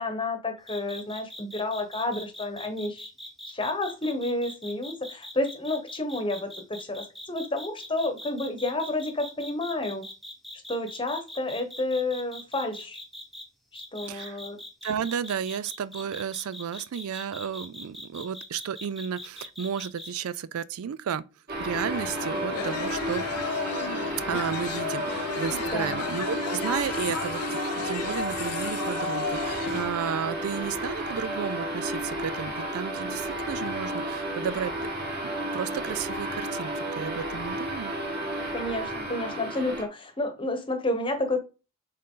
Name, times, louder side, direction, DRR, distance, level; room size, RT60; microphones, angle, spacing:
voice 1, 0.0-3.1 3.5-10.1 10.7-13.0 13.7-14.6 25.7-26.0 38.5-41.4, left 2 dB, 25° left, 1.0 m, -30 dB
sound 1, 0.7-13.4 13.7-20.1, left 1 dB, ahead, 1.0 m, -42 dB
voice 2, 14.0-14.4 14.8-21.2 21.6-23.3 24.3-27.6 27.8-34.7 35.2-37.9, right 7 dB, 75° right, 0.4 m, -33 dB
sound 2, 21.5-39.9, right 1 dB, 45° right, 2.1 m, -32 dB
sound 3, 22.0-29.9, left 7 dB, 90° left, 0.5 m, -34 dB
6.4 x 3.9 x 3.8 m
head